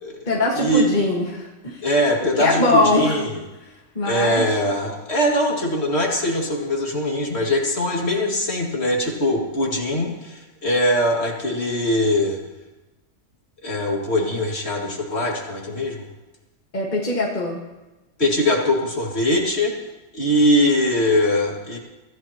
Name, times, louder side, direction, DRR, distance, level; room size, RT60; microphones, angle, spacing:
voice 1, 0.3-1.8 2.4-3.2 4.0-4.5 16.7-17.6, left 2 dB, 35° left, -3 dB, 1.9 m, -21 dB
voice 2, 1.8-3.4 4.0-12.4 13.6-16.1 18.2-19.7 20.1-21.8, left 1 dB, 50° left, -1 dB, 2.6 m, -21 dB
24.5 x 14.0 x 3.0 m, 1.1 s
omnidirectional pair, 1.4 m